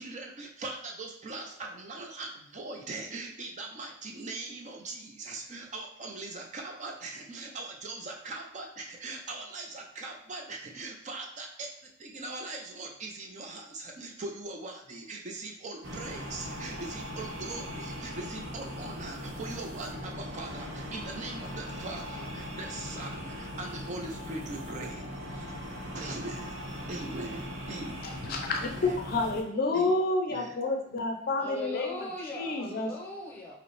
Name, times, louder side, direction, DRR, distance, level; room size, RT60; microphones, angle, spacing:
voice 1, 0.0-11.7 12.0-25.6 25.9-26.6 26.9-29.0 29.7-30.0 30.3-30.6, right 2 dB, 40° right, 0.4 m, -41 dB
sound 1, 15.8-29.4, equal, 85° right, 0.9 m, -40 dB
voice 2, 28.2-32.0 32.3-32.9, left 3 dB, 50° left, 0.5 m, -29 dB
voice 3, 31.4-33.6, equal, 10° left, 0.9 m, -39 dB
5.0 x 2.1 x 3.1 m
head